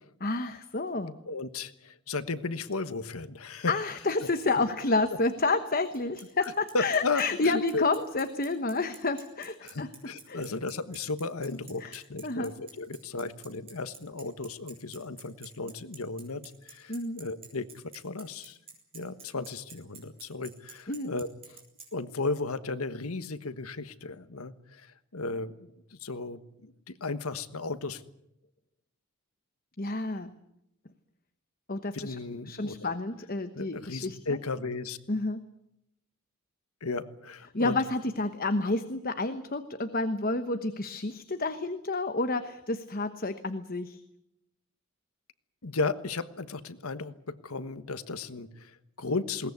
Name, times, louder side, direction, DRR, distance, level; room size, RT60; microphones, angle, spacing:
voice 1, 0.2-1.2 3.7-9.9 10.3-10.4 11.8-11.9 12.2-12.5 16.9-17.2 20.9-21.1 29.8-30.3 31.7-32.2 32.5-34.2 35.1-35.4 37.5-44.0, left 3 dB, 40° left, 9 dB, 1.1 m, -30 dB
voice 2, 1.3-3.7 6.4-7.8 9.6-18.6 18.9-21.6 21.9-28.0 31.9-32.9 33.5-35.0 36.8-37.8 45.6-49.5, left 3 dB, 80° left, 12 dB, 1.3 m, -35 dB
Bicycle, 5.9-21.9, right 5 dB, 25° right, 6.4 m, -48 dB
21.5 x 19.0 x 9.6 m, 0.81 s
head